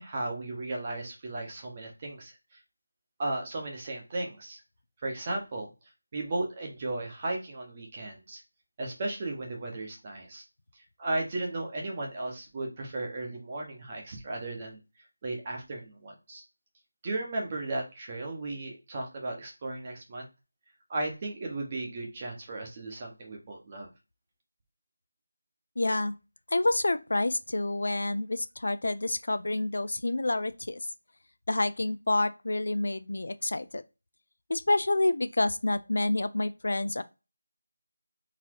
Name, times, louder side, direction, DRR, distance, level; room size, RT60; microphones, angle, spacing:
voice 1, 0.0-2.6 3.2-4.6 5.0-5.7 6.1-8.4 8.8-10.4 11.0-14.8 15.2-16.4 17.0-20.3 20.9-23.9, right 2 dB, 20° right, 1.0 m, -35 dB
voice 2, 25.8-26.1 26.5-30.8 31.5-33.8 34.5-37.0, left 2 dB, 55° left, 0.4 m, -28 dB
4.0 x 2.8 x 4.6 m
figure-of-eight pair, 175°, 0 cm